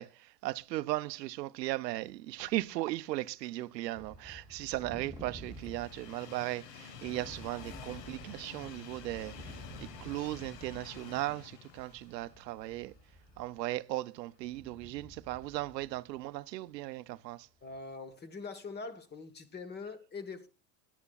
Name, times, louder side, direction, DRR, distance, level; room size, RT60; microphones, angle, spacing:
voice 1, 0.0-9.3 9.8-12.9 13.4-17.5, right 17 dB, 85° right, 0.7 m, -37 dB
Train, 3.7-13.9 14.3-14.4 15.5-15.6, left 7 dB, 75° left, 1.4 m, -51 dB
sound 1, 4.0-6.3 6.8-13.7 14.4-16.4 16.8-16.9 17.5-17.8, right 1 dB, 5° right, 0.7 m, -51 dB
voice 2, 17.6-20.5, left 4 dB, 20° left, 1.2 m, -43 dB
18.0 x 10.0 x 2.3 m
supercardioid pair, 130°, 48 cm